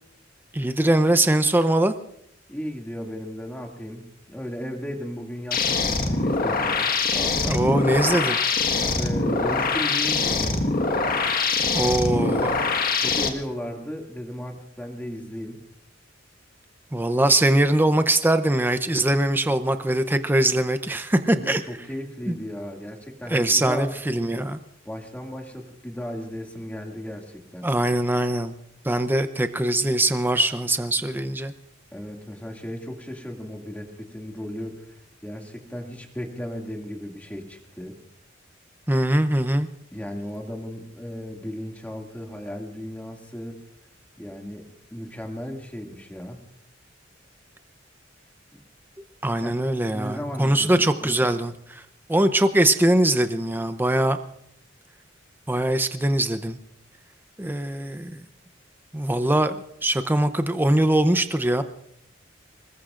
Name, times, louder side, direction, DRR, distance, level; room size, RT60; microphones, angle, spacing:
voice 1, 0.5-1.9 7.4-8.4 11.7-12.6 16.9-21.6 22.3-22.4 23.3-24.6 27.6-28.5 28.8-31.5 38.9-39.7 49.2-51.8 52.1-54.2 55.5-56.6 57.4-58.2 58.9-61.6, right 1 dB, 10° right, 9 dB, 0.6 m, -22 dB
voice 2, 2.5-7.6 8.7-10.8 13.0-15.6 21.4-23.9 24.8-27.7 31.9-35.0 35.2-38.0 39.9-43.6 44.2-46.4 49.4-49.5 49.9-51.3, equal, 10° left, 1 dB, 2.3 m, -35 dB
sound 1, 5.5-13.3, left 4 dB, 50° left, 1.6 m, -23 dB
25.5 x 21.0 x 2.5 m, 0.74 s
head